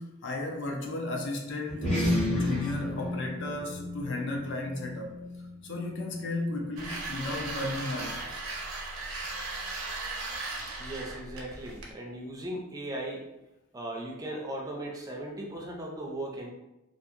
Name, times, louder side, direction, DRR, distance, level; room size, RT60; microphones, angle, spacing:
voice 1, 0.0-5.2 5.6-8.3, left 2 dB, 60° left, 1 dB, 0.5 m, -34 dB
sound 1, 1.7-6.5, left 1 dB, 35° left, 1.1 m, -32 dB
sound 2, 6.8-11.9, right 3 dB, 80° right, 0.6 m, -37 dB
voice 2, 10.8-13.3 13.7-16.5, right 1 dB, 15° right, -1 dB, 0.4 m, -37 dB
2.7 x 2.5 x 2.5 m, 0.97 s
head